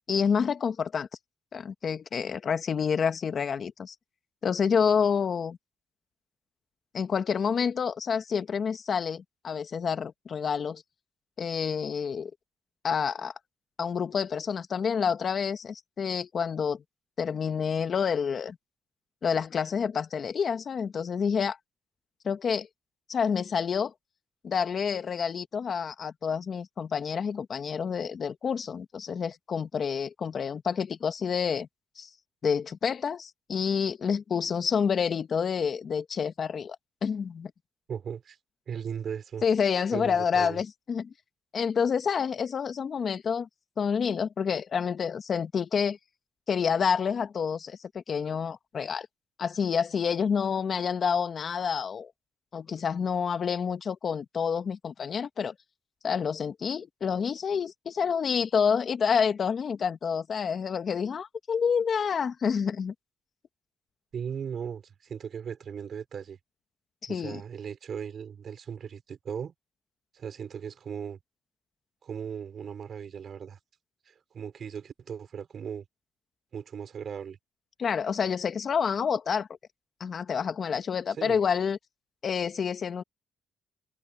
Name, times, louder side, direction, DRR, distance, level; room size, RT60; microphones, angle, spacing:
voice 1, 0.1-1.1 1.5-3.9 4.4-5.6 6.9-10.8 11.4-12.3 12.8-13.3 13.8-16.8 17.2-18.6 19.2-21.6 22.2-22.7 23.1-23.9 24.4-31.7 32.0-32.1 32.4-36.8 37.0-37.5 39.4-41.1 41.5-43.5 43.8-46.0 46.5-49.1 49.4-52.1 52.5-55.5 56.0-62.9 67.0-67.4 77.8-79.5 80.0-81.8 82.2-83.0, left 6 dB, 50° left, 1.7 m, -28 dB
voice 2, 37.9-38.4 38.7-39.4 39.9-40.6 64.1-66.4 67.1-69.5 70.1-71.2 72.0-73.6 74.1-75.8 76.5-77.4 81.1-81.4, right 7 dB, 55° right, 4.5 m, -37 dB
cardioid pair, 90°, 0 cm